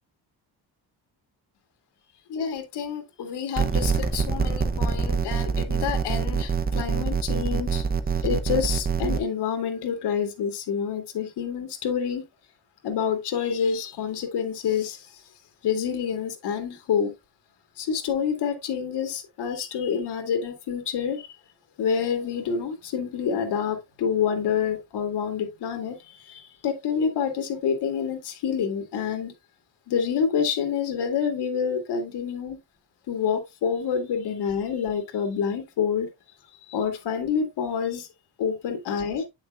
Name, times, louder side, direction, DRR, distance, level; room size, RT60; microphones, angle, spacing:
voice 1, 2.3-7.8 8.2-12.2 12.8-15.1 15.6-17.1 17.8-21.3 21.8-29.3 29.9-32.6 33.1-36.1 36.6-38.1 38.4-39.3, left 7 dB, 85° left, 2.1 m, -27 dB
sound 1, 3.6-9.2, right 5 dB, 25° right, 0.7 m, -25 dB
8.6 x 6.4 x 2.4 m
cardioid pair, 135°, 39 cm